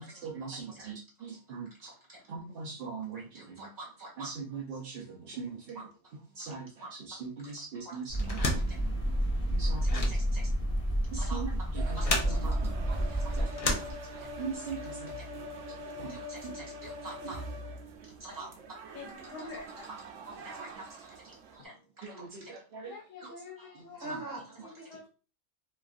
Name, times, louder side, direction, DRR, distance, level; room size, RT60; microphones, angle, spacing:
voice 1, 0.0-1.9 2.3-3.7 4.2-5.8 6.3-8.7 9.5-10.1 11.1-12.9 13.3-14.0 14.4-16.7 17.2-17.3 18.0-18.3 21.4-21.5 22.0-22.9 23.7-24.2, right 5 dB, 60° right, -2 dB, 0.7 m, -42 dB
voice 2, 1.8-2.2 3.1-4.3 6.4-6.5 6.8-6.9 8.4-8.8 10.1-10.4 11.1-11.4 11.9-12.5 12.8-13.4 13.8-14.3 15.2-15.3 16.1-17.4 18.2-18.5 19.5-19.6 20.2-22.5 23.2-23.3 23.6-24.9, right 2 dB, 15° right, -4 dB, 1.4 m, -46 dB
sound 1, 8.1-13.5, equal, 30° left, 1.1 m, -30 dB
sound 2, 8.2-14.5, left 2 dB, 50° left, 0.4 m, -35 dB
sound 3, 11.8-21.6, equal, 90° right, 0.9 m, -43 dB
voice 3, 18.9-19.9 21.6-21.7 22.8-24.1 24.6-25.1, left 4 dB, 85° left, -1 dB, 1.0 m, -46 dB
3.1 x 2.3 x 2.4 m, 0.34 s
omnidirectional pair, 1.3 m